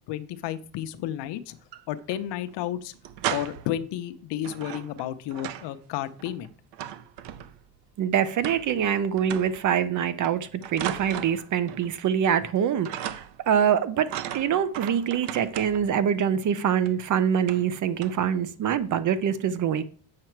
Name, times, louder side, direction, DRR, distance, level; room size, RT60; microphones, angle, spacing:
voice 1, 0.1-1.6 1.9-2.9 3.3-6.5, left 12 dB, 80° left, 0.8 m, -32 dB
sound 1, 1.5-2.2 2.5-2.6 2.9-3.8 4.4-5.8 6.0-7.8 8.4-8.9 9.2-9.7 10.2-11.9 12.2-12.6 12.9-13.5 14.1-16.0 16.9-17.0 17.4-17.7 18.0-18.3 18.7-18.9, right 11 dB, 80° right, 0.7 m, -36 dB
voice 2, 8.0-19.8, right 8 dB, 45° right, 0.7 m, -25 dB
7.7 x 5.9 x 4.5 m
cardioid pair, 155°, 41 cm